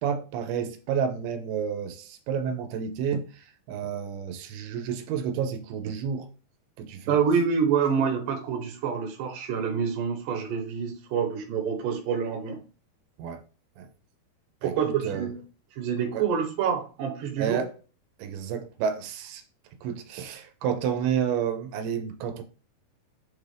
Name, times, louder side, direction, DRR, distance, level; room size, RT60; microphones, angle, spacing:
voice 1, 0.0-6.3 6.8-7.2 13.2-13.4 13.8-13.9 14.6-14.7 15.0-15.3 16.1-16.3 17.4-17.7 18.2-19.4 19.8-22.4, right 7 dB, 85° right, 2.5 m, -30 dB
voice 2, 7.1-12.6 14.6-15.3 15.8-17.6, right 6 dB, 70° right, 2.3 m, -27 dB
6.4 x 2.4 x 3.3 m
omnidirectional pair, 4.4 m